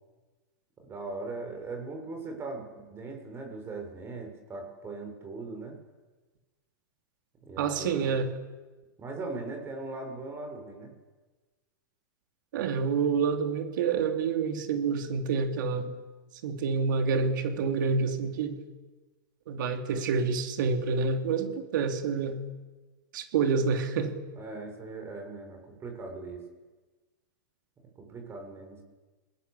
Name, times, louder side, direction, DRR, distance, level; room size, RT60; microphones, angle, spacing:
voice 1, 0.8-5.8 7.4-8.2 9.0-10.9 24.3-26.4 28.0-28.8, right 3 dB, 20° right, 4 dB, 7.0 m, -39 dB
voice 2, 7.6-8.3 12.5-15.9 16.4-18.6 19.5-22.4 23.1-24.1, right 5 dB, 70° right, 6 dB, 3.7 m, -28 dB
29.0 x 19.5 x 8.6 m, 1.3 s
hypercardioid pair, 125°, 11 cm